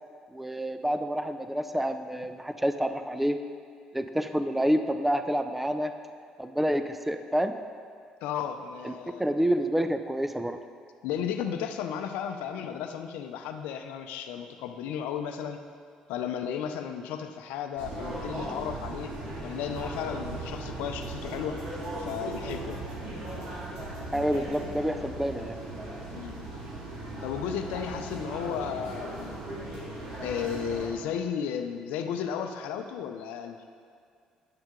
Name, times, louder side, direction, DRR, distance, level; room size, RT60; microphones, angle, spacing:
voice 1, 0.3-3.4 3.9-5.9 6.4-7.6 8.8-8.9 9.2-10.6 24.1-25.6, equal, 5° right, 8 dB, 0.5 m, -28 dB
voice 2, 8.2-9.2 11.0-15.6 16.1-19.1 19.4-21.6 22.0-22.9 26.1-26.5 27.2-29.4 30.2-33.6, left 8 dB, 85° left, 7 dB, 0.5 m, -34 dB
sound 1, 17.8-30.9, right 2 dB, 80° right, 2.3 m, -38 dB
9.9 x 6.3 x 3.8 m, 2.2 s
supercardioid pair, 65°, 3 cm